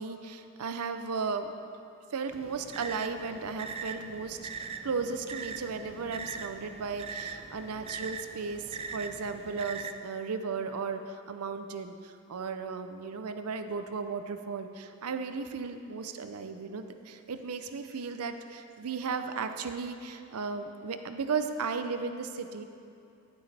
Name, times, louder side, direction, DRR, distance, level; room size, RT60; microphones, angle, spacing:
voice 1, 0.0-1.5 2.1-22.6, right 5 dB, 85° right, 8 dB, 0.6 m, -35 dB
sound 1, 2.3-9.9, right 5 dB, 25° right, 0.3 m, -41 dB
11.5 x 9.1 x 3.4 m, 2.6 s
head